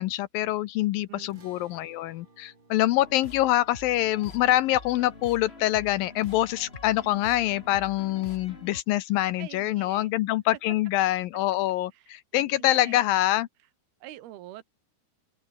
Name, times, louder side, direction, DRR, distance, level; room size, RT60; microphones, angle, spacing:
voice 1, 0.0-13.5, left 15 dB, 80° left, 2.2 m, -25 dB
sound 1, 1.3-7.8, right 3 dB, 30° right, 6.0 m, -60 dB
sound 2, 2.9-8.8, left 3 dB, 15° left, 2.6 m, -45 dB
voice 2, 9.4-10.1 11.9-13.0 14.0-14.6, right 14 dB, 75° right, 3.2 m, -45 dB
open air
omnidirectional pair, 4.6 m